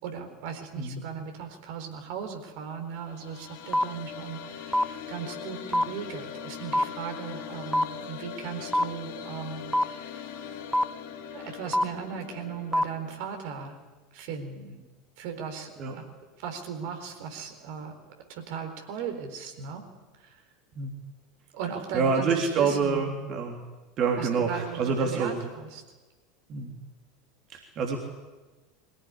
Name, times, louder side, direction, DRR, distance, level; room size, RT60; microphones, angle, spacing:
voice 1, 0.0-10.2 10.7-10.8 11.3-13.8 14.1-14.8 15.2-16.1 16.4-18.0 18.3-19.8 20.2-20.4 21.5-23.1 24.2-25.8, right 7 dB, 55° right, 4 dB, 4.1 m, -37 dB
sound 1, 2.9-13.1, left 7 dB, 60° left, 3.5 m, -41 dB
sound 2, 3.7-3.8 4.7-4.8 5.7-5.8 6.7-6.8 7.7-7.8 8.7-8.8 9.7-9.8 10.7-10.8 11.7-11.8 12.7-12.8, left 1 dB, ahead, 0.7 m, -22 dB
voice 2, 21.9-23.6 24.0-25.3 26.5-26.7 27.5-28.0, right 5 dB, 40° right, 1 dB, 3.5 m, -27 dB
23.5 x 17.0 x 9.9 m, 1.2 s
figure-of-eight pair, 75°, 0 cm